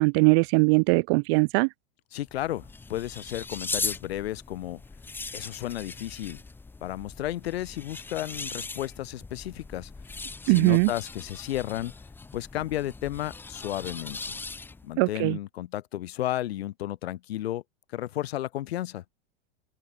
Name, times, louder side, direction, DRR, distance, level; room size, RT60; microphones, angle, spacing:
voice 1, 0.0-1.7 10.5-10.9 15.0-15.4, right 34 dB, 25° right, 0.5 m, -21 dB
voice 2, 2.1-4.8 5.3-6.4 6.8-9.9 10.4-11.9 12.3-14.4 14.8-17.6 17.9-19.0, left 14 dB, 70° left, 3.5 m, -33 dB
sound 1, 2.2-15.0, left 3 dB, 5° left, 3.2 m, -39 dB
open air
supercardioid pair, 175°, 32 cm